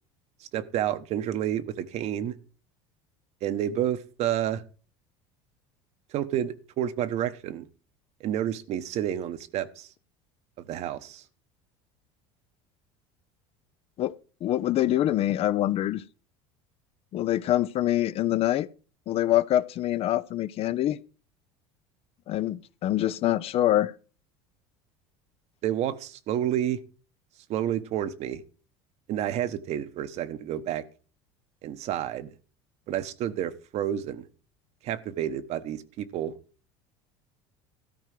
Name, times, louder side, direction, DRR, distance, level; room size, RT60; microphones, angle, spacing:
voice 1, 0.5-2.4 3.4-4.6 6.1-7.6 8.2-9.9 10.7-11.2 25.6-26.8 27.5-28.4 29.1-30.8 31.6-32.3 32.9-34.2 34.8-36.4, right 11 dB, 55° right, 1.1 m, -30 dB
voice 2, 14.4-16.0 17.1-18.7 19.1-21.0 22.3-23.9, left 13 dB, 45° left, 0.6 m, -25 dB
13.0 x 4.5 x 7.6 m
supercardioid pair, 100°, 13 cm